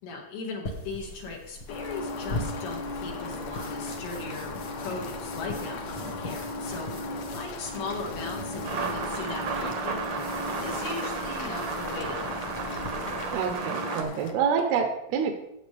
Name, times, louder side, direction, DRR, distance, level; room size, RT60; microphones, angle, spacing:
voice 1, 0.0-4.5 4.8-10.3 10.6-12.5, left 3 dB, 90° left, -1 dB, 4.0 m, -38 dB
sound 1, 0.6-13.6, left 1 dB, 50° left, 1.5 m, -41 dB
sound 2, 1.7-14.3, left 2 dB, 65° left, 1.9 m, -37 dB
sound 3, 8.6-14.0, right 5 dB, 70° right, 1.4 m, -33 dB
voice 2, 13.3-15.3, right 6 dB, 85° right, 5 dB, 2.8 m, -27 dB
14.5 x 8.4 x 3.4 m, 0.86 s
omnidirectional pair, 4.3 m